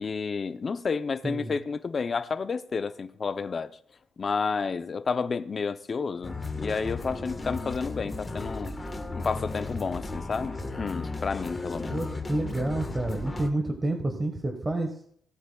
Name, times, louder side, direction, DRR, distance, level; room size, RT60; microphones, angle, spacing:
voice 1, 0.0-3.7 4.2-8.7 9.1-12.0, left 5 dB, 40° left, 0.6 m, -31 dB
voice 2, 1.2-1.5 11.8-14.9, right 2 dB, 20° right, 1.4 m, -29 dB
sound 1, 6.2-13.5, left 3 dB, 20° left, 1.4 m, -35 dB
17.5 x 8.1 x 2.4 m
cardioid pair, 90°, 0 cm